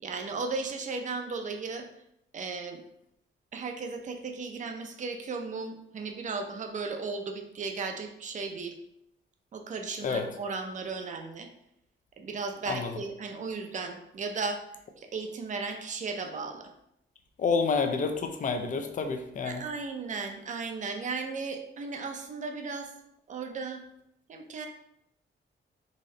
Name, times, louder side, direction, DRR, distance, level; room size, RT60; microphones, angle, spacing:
voice 1, 0.0-1.9 2.3-2.8 3.5-8.8 9.5-11.5 12.2-14.6 15.0-16.7 19.4-22.9 23.3-23.8 24.3-24.7, right 4 dB, 35° right, 4 dB, 0.5 m, -35 dB
voice 2, 17.4-19.6, left 5 dB, 40° left, 6 dB, 0.5 m, -28 dB
4.1 x 3.1 x 3.8 m, 0.78 s
wide cardioid pair, 180°, 21 cm